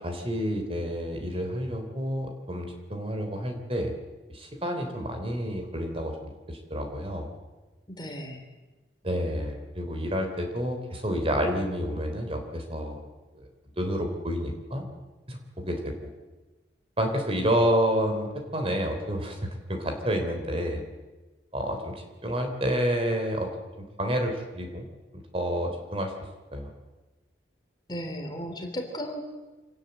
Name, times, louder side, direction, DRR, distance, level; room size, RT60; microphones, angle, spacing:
voice 1, 0.0-3.9 4.3-7.3 9.0-13.0 13.4-13.5 13.8-14.8 15.3-15.9 17.0-20.8 21.5-23.5 24.0-24.9 25.3-26.1 26.5-26.7, equal, 30° right, 4 dB, 3.4 m, -29 dB
voice 2, 7.9-8.5 27.9-29.2, equal, 25° left, 4 dB, 3.1 m, -35 dB
25.5 x 18.5 x 7.9 m, 1.2 s
head